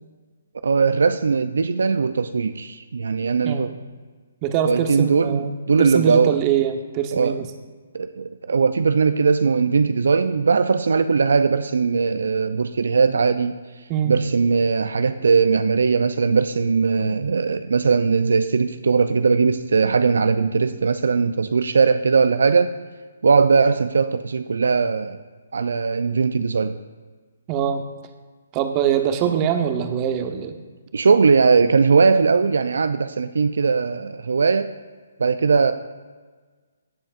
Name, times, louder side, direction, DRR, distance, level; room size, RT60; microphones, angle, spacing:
voice 1, 0.6-3.7 4.6-6.4 7.1-7.4 7.9-13.5 14.1-22.7 23.2-25.2 25.5-26.8 29.3-29.4 30.9-34.7 35.2-35.7, right 5 dB, 70° right, 11 dB, 0.4 m, -19 dB
voice 2, 3.4-3.8 4.4-7.5 13.9-14.1 27.5-27.8 28.5-30.6, right 8 dB, 30° right, 6 dB, 0.9 m, -23 dB
17.0 x 7.6 x 2.5 m, 1.4 s
figure-of-eight pair, 140°, 0 cm